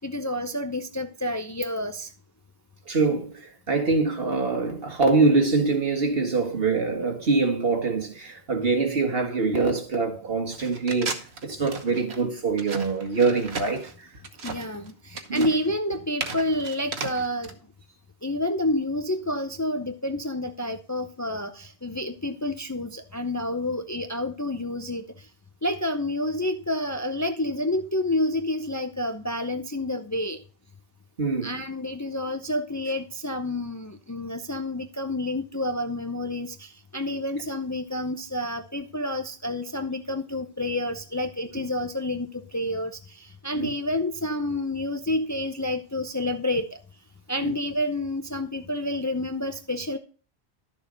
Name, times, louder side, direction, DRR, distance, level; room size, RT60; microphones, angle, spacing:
voice 1, 0.0-2.1 14.4-17.5 18.2-25.3 25.6-30.4 31.4-46.8 47.3-50.0, left 1 dB, 20° left, 0.6 m, -29 dB
voice 2, 2.9-14.1 15.3-15.5 31.2-31.5 43.6-43.7 47.4-47.5, right 4 dB, 65° right, 2.0 m, -24 dB
sound 1, 10.5-17.5, right 4 dB, 80° right, 1.4 m, -35 dB
12.0 x 7.0 x 3.9 m
omnidirectional pair, 1.1 m